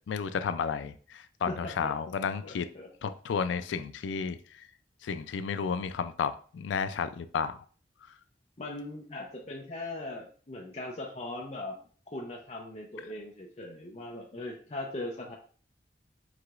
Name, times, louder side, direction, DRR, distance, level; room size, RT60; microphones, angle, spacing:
voice 1, 0.1-2.7 3.0-4.7 5.0-7.6 8.0-8.1, left 6 dB, 85° left, 11 dB, 0.3 m, -32 dB
voice 2, 1.5-1.9 2.5-2.9 8.6-11.8 12.1-15.3, left 2 dB, 35° left, 0 dB, 0.5 m, -39 dB
4.8 x 3.9 x 2.4 m, 0.43 s
head